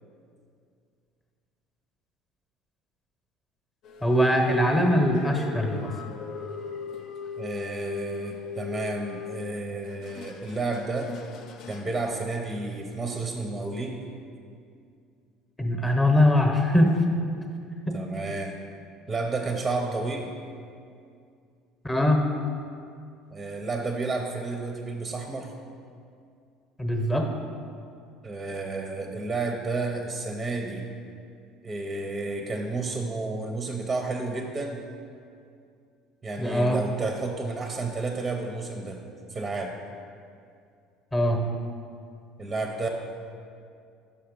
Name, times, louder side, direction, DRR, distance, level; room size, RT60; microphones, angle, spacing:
sound 1, 3.8-12.1, left 6 dB, 60° left, 0.5 m, -40 dB
voice 1, 4.0-5.9 15.6-17.0 17.9-18.0 21.8-22.2 26.8-27.3 36.4-36.8 41.1-41.4, left 1 dB, 15° left, 3 dB, 1.0 m, -22 dB
voice 2, 7.4-11.1 11.7-14.1 17.9-18.5 19.1-20.3 23.3-25.5 28.2-30.9 31.6-34.8 36.2-39.0 39.3-39.7 42.4-42.9, right 3 dB, 20° right, 2 dB, 0.6 m, -31 dB
5.6 x 5.4 x 5.2 m, 2.4 s
supercardioid pair, 95°, 0 cm